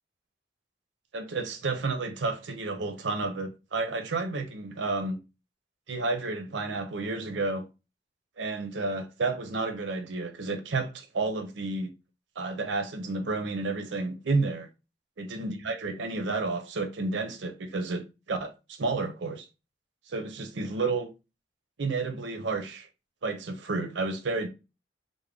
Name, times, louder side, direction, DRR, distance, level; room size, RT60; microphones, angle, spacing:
voice 1, 1.1-5.2 5.9-7.7 8.4-11.9 12.4-14.7 15.2-19.5 20.1-21.1 21.8-22.9 23.2-24.5, right 3 dB, 85° right, 0.6 m, -31 dB
3.5 x 2.1 x 3.5 m
head